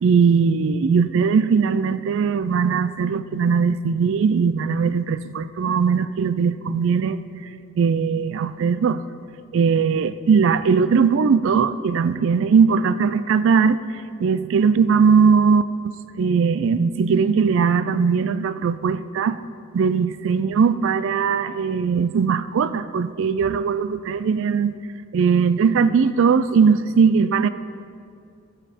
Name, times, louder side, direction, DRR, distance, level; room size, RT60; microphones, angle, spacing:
voice 1, 0.0-7.2 7.8-9.0 9.5-13.8 14.2-15.9 16.2-19.4 19.7-24.8 25.1-27.5, right 5 dB, 60° right, 13 dB, 0.3 m, -19 dB
12.5 x 7.5 x 5.0 m, 2.4 s
head